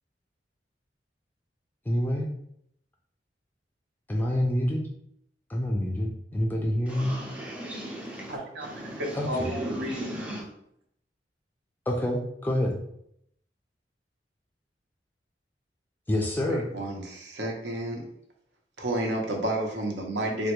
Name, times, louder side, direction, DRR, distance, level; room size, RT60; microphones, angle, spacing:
voice 1, 1.9-2.3 4.1-4.9 5.5-7.2 9.1-9.5 11.9-12.8 16.1-16.7, left 1 dB, 10° left, -1 dB, 0.3 m, -27 dB
voice 2, 6.9-10.5, equal, 10° right, -3 dB, 0.7 m, -36 dB
voice 3, 8.3-8.7 9.0-10.0 16.7-18.0 18.8-20.5, right 1 dB, 75° right, 0 dB, 0.7 m, -31 dB
3.4 x 2.2 x 2.9 m, 0.72 s
head